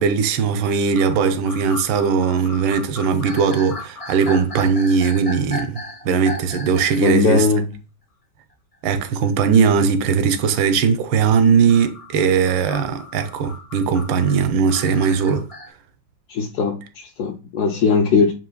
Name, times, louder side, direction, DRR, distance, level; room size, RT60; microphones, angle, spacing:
voice 1, 0.0-7.5 8.8-15.5, right 6 dB, 80° right, 1.3 m, -19 dB
sound 1, 0.9-7.2 7.7-7.8 9.2-9.3 11.7-15.7, left 2 dB, 50° left, 0.4 m, -36 dB
voice 2, 7.0-7.7 16.3-18.3, left 5 dB, 75° left, 0.9 m, -19 dB
7.4 x 2.8 x 2.2 m
omnidirectional pair, 2.1 m